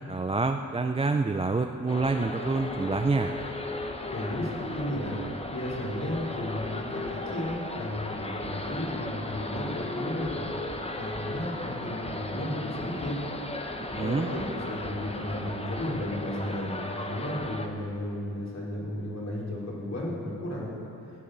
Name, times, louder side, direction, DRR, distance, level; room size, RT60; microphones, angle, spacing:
voice 1, 0.1-3.3 13.8-14.3, right 3 dB, 15° right, 6 dB, 0.4 m, -27 dB
sound 1, 1.9-17.7, left 2 dB, 15° left, 0.9 m, -36 dB
voice 2, 4.1-5.2 5.5-10.5 10.9-13.2 14.0-20.7, left 1 dB, 45° left, -5 dB, 3.4 m, -34 dB
13.0 x 7.0 x 8.9 m, 2.9 s
wide cardioid pair, 105°, 36 cm